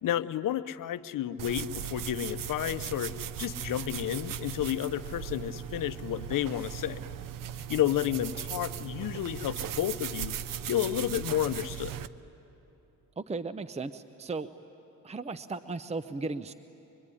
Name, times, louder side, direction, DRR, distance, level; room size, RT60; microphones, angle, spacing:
voice 1, 0.0-7.0 7.7-10.3 10.7-12.0, left 12 dB, 75° left, 12 dB, 0.8 m, -31 dB
sound 1, 1.4-12.1, right 10 dB, 75° right, 0.8 m, -38 dB
voice 2, 13.2-14.5 15.0-16.5, right 3 dB, 20° right, 12 dB, 0.7 m, -36 dB
24.0 x 24.0 x 9.9 m, 2.9 s
cardioid pair, 85°, 33 cm